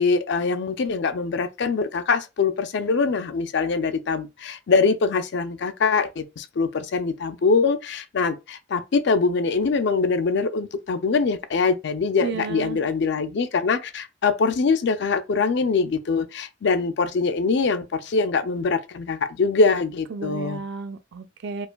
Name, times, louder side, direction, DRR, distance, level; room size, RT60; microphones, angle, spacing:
voice 1, 0.0-20.6, left 4 dB, 60° left, 0.4 m, -23 dB
voice 2, 12.2-12.8 20.1-21.7, right 5 dB, 60° right, 0.5 m, -32 dB
4.7 x 2.5 x 2.2 m
head